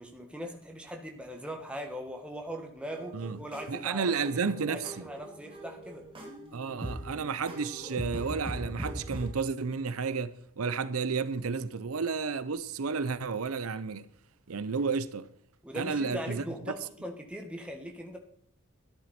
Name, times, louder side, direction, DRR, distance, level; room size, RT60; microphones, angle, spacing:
voice 1, 0.0-6.1 15.6-18.2, equal, 5° right, 1.5 m, -40 dB
sound 1, 2.9-9.3, right 1 dB, 25° right, 2.4 m, -41 dB
voice 2, 3.7-4.8 6.5-14.1 14.5-15.3 15.7-16.4, right 5 dB, 85° right, 0.6 m, -32 dB
12.5 x 10.5 x 4.3 m
head